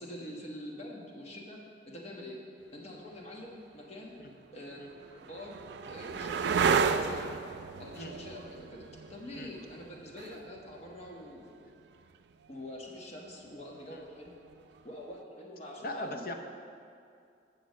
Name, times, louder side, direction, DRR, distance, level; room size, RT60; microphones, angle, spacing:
voice 1, 0.0-2.4 2.7-4.2 4.5-4.8 5.2-7.4 7.8-11.5 12.5-14.4 14.8-16.3, left 1 dB, 35° left, -1 dB, 1.2 m, -45 dB
sound 1, 3.4-3.5 4.3-11.9 14.3-14.8, right 5 dB, 70° right, 0.3 m, -33 dB
voice 2, 15.8-16.3, left 1 dB, 50° left, 5 dB, 0.7 m, -39 dB
8.5 x 6.7 x 5.1 m, 2.4 s
head